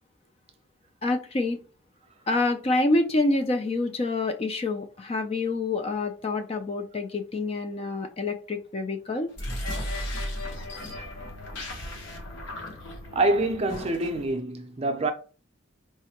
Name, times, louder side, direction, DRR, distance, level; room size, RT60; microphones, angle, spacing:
voice 1, 1.0-1.6 2.3-9.3, left 2 dB, 30° left, 0.3 m, -27 dB
sound 1, 9.3-14.4, left 1 dB, 65° left, 0.9 m, -35 dB
voice 2, 13.1-15.1, right 2 dB, 30° right, 0.5 m, -25 dB
4.6 x 2.1 x 2.9 m
head